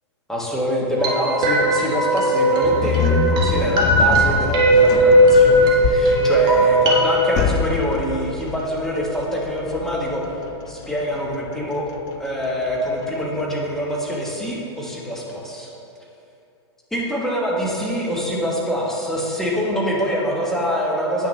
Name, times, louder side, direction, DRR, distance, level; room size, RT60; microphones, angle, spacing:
voice 1, 0.3-10.3 10.7-11.8 12.2-15.7 16.9-21.3, equal, 5° left, -4 dB, 1.1 m, -25 dB
sound 1, 1.0-7.2, right 1 dB, 30° right, 1.2 m, -17 dB
sound 2, 2.6-13.8, left 6 dB, 25° left, 0.4 m, -26 dB
8.8 x 5.9 x 3.2 m, 2.7 s
hypercardioid pair, 130°, 15 cm